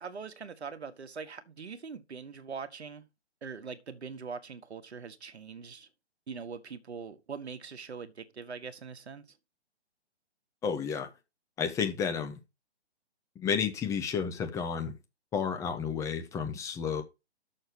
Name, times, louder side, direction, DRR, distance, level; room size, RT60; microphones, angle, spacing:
voice 1, 0.0-3.0 3.4-5.9 6.3-9.4, right 5 dB, 70° right, 1.4 m, -42 dB
voice 2, 10.6-11.1 11.6-12.4 13.4-14.9 15.3-17.0, left 6 dB, 10° left, 0.8 m, -31 dB
6.6 x 6.6 x 6.1 m
figure-of-eight pair, 135°, 34 cm